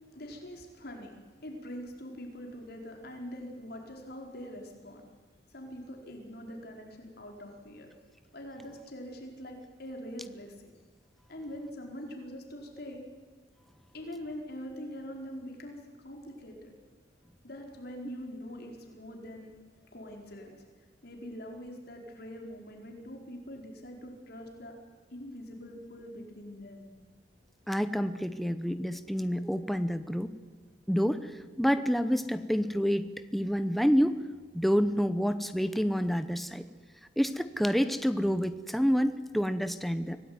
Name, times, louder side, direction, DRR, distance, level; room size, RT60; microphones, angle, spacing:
voice 1, 0.1-5.0 5.5-7.9 8.3-10.7 11.3-13.0 13.9-16.7 17.4-19.5 19.8-20.6 21.0-24.7 25.1-26.9, equal, 60° left, 2 dB, 4.7 m, -43 dB
voice 2, 27.7-30.3 30.9-31.3 31.6-34.2 34.5-36.6 37.2-40.2, equal, ahead, 10 dB, 0.8 m, -28 dB
25.0 x 17.5 x 9.6 m, 1.4 s
head